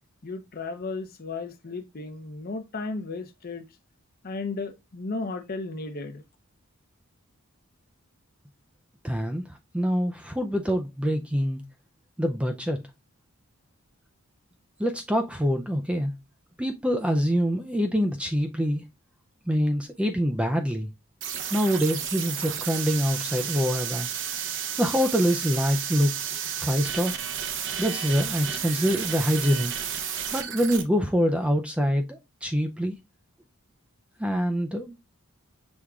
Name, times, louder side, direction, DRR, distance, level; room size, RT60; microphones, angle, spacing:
voice 1, 0.2-3.6 4.2-6.2, left 3 dB, 40° left, 0.6 m, -34 dB
voice 2, 9.0-9.4 9.7-11.6 12.2-12.8 14.8-16.1 16.6-18.8 19.5-20.9 21.5-24.1 24.8-27.1 27.8-29.7 30.3-33.0 34.2-35.1, equal, 5° right, 0.3 m, -25 dB
sound 1, 21.2-30.8, right 8 dB, 55° right, 0.7 m, -32 dB
6.2 x 3.5 x 2.3 m
head